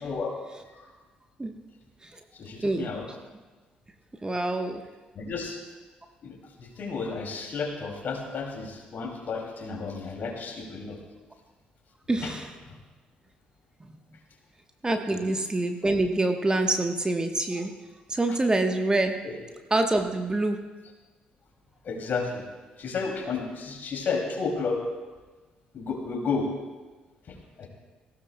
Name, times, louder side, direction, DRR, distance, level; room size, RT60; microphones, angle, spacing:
voice 1, 0.0-0.4 0.7-0.8 2.3-3.0 5.1-5.6 6.2-11.0 12.2-12.3 12.7-12.8 15.1-15.2 18.3-18.4 19.2-19.3 21.8-22.4 22.8-24.8 25.7-26.5 27.3-27.7, left 4 dB, 50° left, 2 dB, 2.6 m, -32 dB
voice 2, 2.6-3.2 4.2-4.8 12.1-12.5 13.9-14.0 14.8-17.7 18.1-19.2 19.7-20.6, right 2 dB, 20° right, 5 dB, 1.1 m, -26 dB
18.5 x 15.5 x 2.2 m, 1.3 s
figure-of-eight pair, 45°, 4 cm